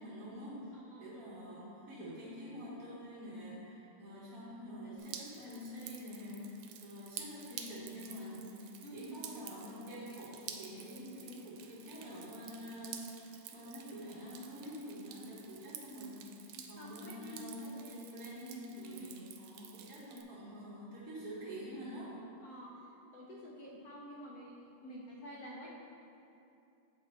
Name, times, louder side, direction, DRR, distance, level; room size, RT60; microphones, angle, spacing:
voice 1, 0.0-16.2 16.7-22.2, equal, 45° right, -9 dB, 1.4 m, -47 dB
voice 2, 0.7-1.1 8.8-9.3 16.8-17.5 18.8-19.2 22.4-25.7, equal, 75° left, -3 dB, 0.8 m, -49 dB
Drip, 5.0-20.2, right 8 dB, 85° right, 1.5 m, -51 dB
6.6 x 5.0 x 4.3 m, 2.7 s
omnidirectional pair, 2.4 m